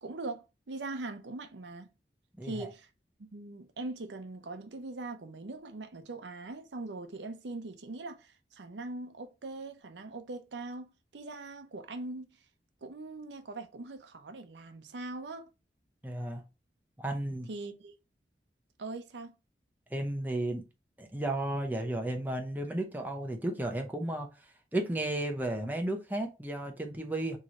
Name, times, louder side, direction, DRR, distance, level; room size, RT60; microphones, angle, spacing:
voice 1, 0.0-1.9 2.4-2.9 3.3-12.4 12.8-15.5 17.5-17.9 18.8-19.4, right 2 dB, 85° right, 0.6 m, -41 dB
voice 2, 2.4-2.7 16.0-16.4 17.0-17.5 19.9-20.6 21.0-27.4, right 1 dB, 10° right, 0.7 m, -34 dB
3.7 x 3.1 x 4.1 m
head